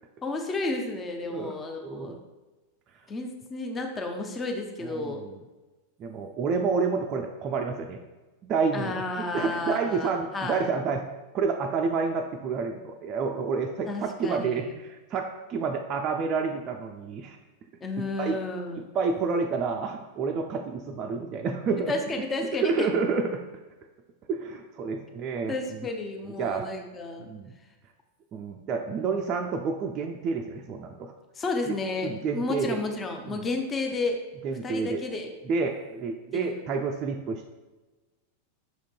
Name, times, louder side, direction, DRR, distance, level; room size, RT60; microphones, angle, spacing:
voice 1, 0.2-2.2 3.1-5.2 8.7-10.7 13.9-14.7 17.8-18.9 21.9-22.9 25.5-27.3 31.4-34.2 34.6-35.3 36.3-36.6, left 3 dB, 20° left, 3 dB, 0.5 m, -32 dB
voice 2, 1.8-2.2 4.8-5.3 6.0-8.0 8.4-9.0 9.3-11.1 11.3-17.4 18.2-18.4 18.7-21.9 22.5-23.4 24.3-25.9 26.4-26.7 27.2-27.5 28.3-31.1 31.7-31.8 32.0-32.8 33.3-33.4 34.4-35.0 35.5-37.5, right 5 dB, 30° right, 2 dB, 0.3 m, -29 dB
5.9 x 3.6 x 2.3 m, 1.2 s
figure-of-eight pair, 90°, 0 cm